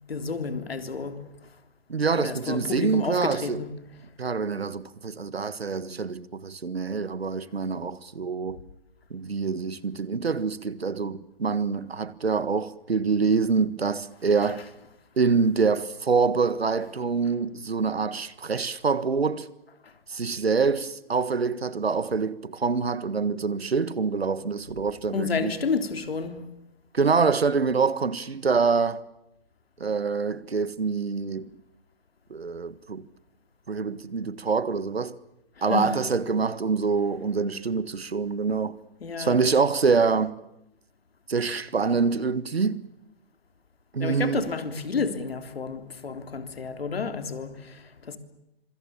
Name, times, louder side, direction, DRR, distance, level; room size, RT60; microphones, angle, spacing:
voice 1, 0.1-1.3 2.2-3.8 19.8-19.9 25.1-26.5 35.6-35.9 39.0-39.4 44.0-48.2, left 5 dB, 75° left, 3.5 m, -31 dB
voice 2, 1.9-3.6 4.2-8.6 9.1-14.7 15.2-19.5 20.1-25.5 26.9-29.0 29.8-31.5 32.3-33.1 33.7-35.2 35.6-38.8 39.2-40.3 41.3-42.8 43.9-44.4, right 5 dB, 90° right, 1.6 m, -25 dB
26.0 x 24.5 x 7.1 m
hypercardioid pair, 135°, 30 cm